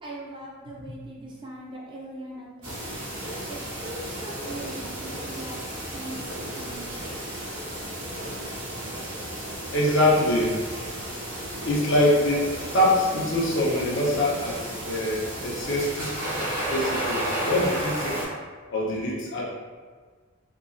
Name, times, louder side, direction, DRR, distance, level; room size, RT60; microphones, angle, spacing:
voice 1, 0.0-3.1 3.5-7.3, right 2 dB, 25° right, -4 dB, 0.4 m, -41 dB
sound 1, 2.6-18.2, right 1 dB, 65° right, 1.4 m, -33 dB
voice 2, 9.7-10.6 11.6-12.5 12.7-18.2 18.7-19.5, left 1 dB, 60° left, -3 dB, 0.6 m, -24 dB
2.9 x 2.3 x 2.5 m, 1.5 s
head